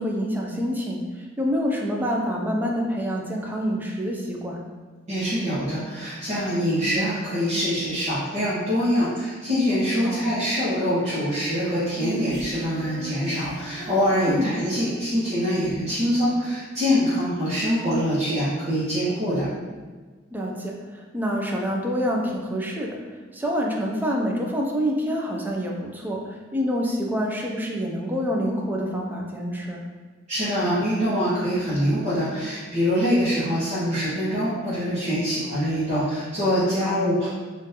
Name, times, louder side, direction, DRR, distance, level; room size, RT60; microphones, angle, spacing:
voice 1, 0.0-4.6 10.0-10.3 14.3-14.6 20.3-23.0 23.3-29.8 36.8-37.0, equal, 10° right, -1 dB, 0.4 m, -27 dB
voice 2, 5.1-19.5 30.3-37.3, equal, 40° right, -13 dB, 1.0 m, -24 dB
Female singing, 11.9-15.5, equal, 15° left, 1.4 m, -37 dB
3.7 x 2.5 x 2.7 m, 1.4 s
head